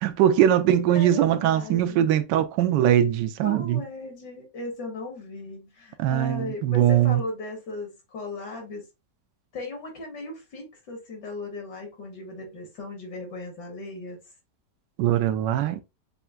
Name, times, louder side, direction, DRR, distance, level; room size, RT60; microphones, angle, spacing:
voice 1, 0.0-3.8 6.0-7.2 15.0-15.8, right 11 dB, 85° right, 1.2 m, -21 dB
voice 2, 0.7-2.1 3.4-8.8 9.5-14.2, left 2 dB, 75° left, 2.1 m, -37 dB
6.7 x 2.5 x 2.3 m
omnidirectional pair, 1.9 m